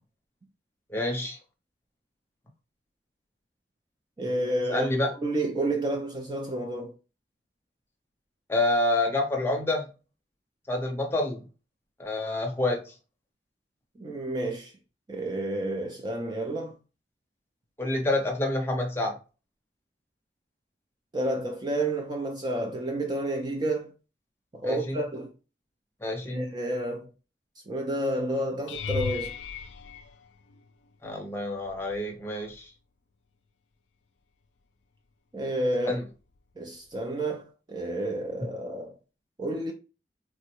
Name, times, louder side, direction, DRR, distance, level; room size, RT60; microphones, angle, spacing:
voice 1, 0.9-1.4 4.2-4.3 4.7-5.1 8.5-9.9 10.7-11.4 12.0-12.9 17.8-19.1 24.6-25.0 26.0-26.5 31.0-32.7 35.8-36.0, left 2 dB, 15° left, 0.6 m, -28 dB
voice 2, 4.2-4.9 5.2-6.9 14.0-14.7 15.1-16.7 21.1-23.9 24.5-25.3 26.3-27.1 27.7-29.3 35.3-36.0 36.6-39.0 39.4-39.7, right 1 dB, 25° right, 0.4 m, -30 dB
sound 1, 28.7-31.0 31.6-32.1 32.5-32.6 37.0-37.1, left 6 dB, 80° left, 0.3 m, -36 dB
3.5 x 2.1 x 2.9 m
head